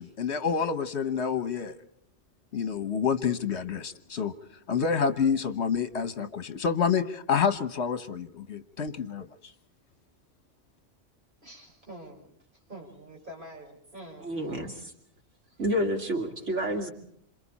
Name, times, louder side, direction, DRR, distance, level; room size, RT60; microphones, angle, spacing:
voice 1, 0.0-1.8 2.5-4.3 4.7-9.5, left 6 dB, 65° left, 11 dB, 1.4 m, -28 dB
voice 2, 11.4-12.3 12.7-14.3, right 1 dB, 45° right, 0 dB, 6.3 m, -46 dB
voice 3, 14.2-14.9 15.6-16.9, equal, 75° right, 2 dB, 3.0 m, -29 dB
28.0 x 27.5 x 4.2 m, 0.66 s
omnidirectional pair, 1.2 m